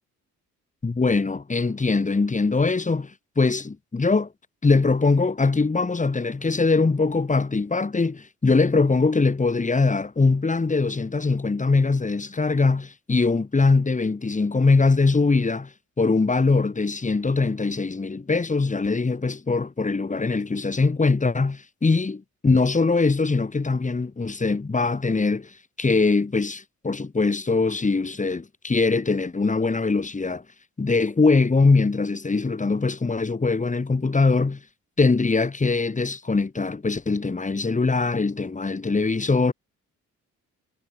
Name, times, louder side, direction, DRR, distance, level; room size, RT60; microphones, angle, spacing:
voice 1, 0.8-4.3 4.6-15.7 16.0-30.4 30.8-34.6 35.0-39.5, left 3 dB, 25° left, 6.2 m, -22 dB
cardioid pair, 90°, 30 cm